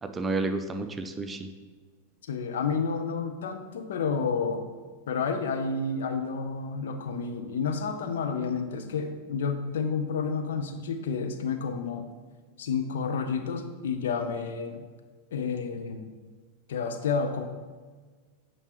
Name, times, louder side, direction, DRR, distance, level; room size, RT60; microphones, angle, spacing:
voice 1, 0.0-1.5, right 3 dB, 20° right, 8 dB, 0.5 m, -31 dB
voice 2, 2.3-4.7 5.1-12.1 12.6-14.8 15.3-16.1 16.7-17.4, left 5 dB, 65° left, 7 dB, 0.6 m, -30 dB
8.9 x 4.5 x 3.0 m, 1.5 s
figure-of-eight pair, 90°, 0 cm